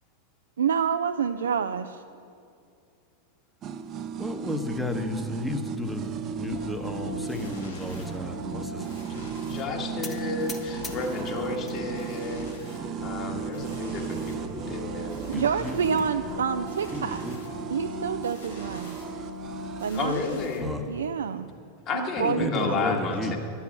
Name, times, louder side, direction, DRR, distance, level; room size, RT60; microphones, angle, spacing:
voice 1, 0.6-2.0 15.3-17.2 17.7-19.0 19.8-20.1 20.9-21.5 21.9-23.4, right 7 dB, 65° right, 9 dB, 0.3 m, -28 dB
sound 1, 3.6-20.5, right 7 dB, 30° right, 0.7 m, -36 dB
voice 2, 4.2-9.0 15.3-16.0 16.9-17.4 20.6-20.8 22.4-23.4, left 1 dB, ahead, 5 dB, 1.0 m, -33 dB
sound 2, 6.5-21.1, left 3 dB, 70° left, 2.2 m, -42 dB
voice 3, 9.5-15.2 19.9-20.7 21.8-23.4, left 4 dB, 35° left, 1 dB, 1.8 m, -32 dB
sound 3, 10.0-11.8 12.2-12.8 13.4-13.5 13.8-13.9 14.2-14.3 15.4-16.1, left 4 dB, 20° left, 1.2 m, -43 dB
11.5 x 7.0 x 8.2 m, 2.5 s
figure-of-eight pair, 90°, 0 cm